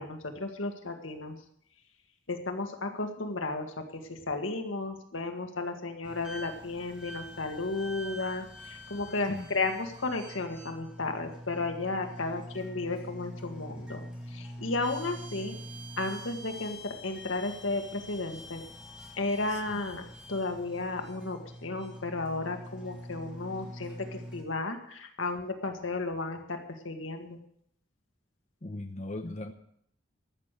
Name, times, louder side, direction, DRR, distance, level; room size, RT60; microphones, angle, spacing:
voice 1, 0.0-1.4 2.3-14.0 14.3-15.6 16.0-18.6 19.2-20.0 20.3-27.4, left 3 dB, 85° left, 5 dB, 1.9 m, -34 dB
sound 1, 6.0-24.4, equal, 5° right, 2.6 m, -45 dB
voice 2, 19.5-19.8 28.6-29.5, left 2 dB, 35° left, 6 dB, 0.9 m, -39 dB
14.0 x 6.8 x 9.1 m, 0.70 s
head